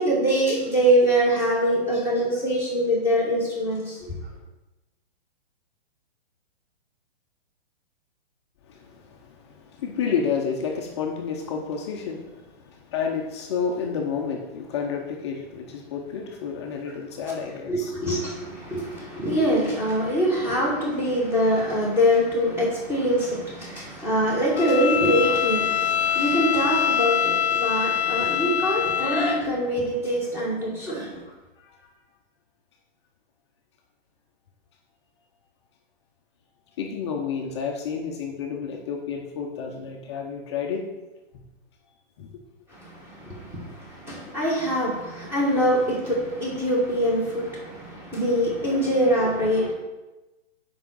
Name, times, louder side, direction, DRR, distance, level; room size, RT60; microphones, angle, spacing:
voice 1, 0.0-4.0 17.7-31.2 42.7-49.7, equal, 5° right, -4 dB, 1.5 m, -24 dB
voice 2, 8.7-17.9 31.6-31.8 36.8-40.9 42.2-42.3, left 6 dB, 25° left, 1 dB, 0.6 m, -30 dB
Bowed string instrument, 24.6-29.4, left 9 dB, 80° left, 0.5 m, -24 dB
5.6 x 5.0 x 6.2 m, 1.1 s
hypercardioid pair, 160°, 32 cm